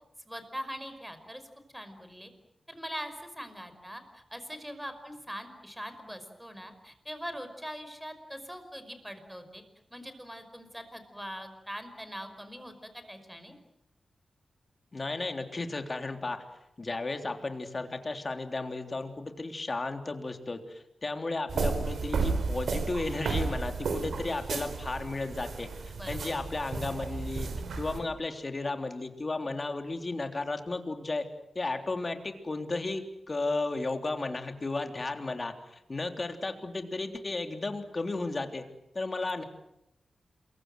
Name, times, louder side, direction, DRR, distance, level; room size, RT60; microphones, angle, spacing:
voice 1, 0.3-1.4 1.7-2.3 2.7-9.6 9.9-13.5 26.0-26.4, equal, 5° right, 8 dB, 5.4 m, -42 dB
voice 2, 14.9-16.4 16.8-25.7 26.1-27.5 27.8-31.2 31.5-38.6 38.9-39.4, left 3 dB, 40° left, 6 dB, 3.5 m, -34 dB
sound 1, 21.5-28.0, right 4 dB, 85° right, 4.3 m, -33 dB
27.5 x 23.5 x 7.8 m, 0.84 s
cardioid pair, 75°, 0 cm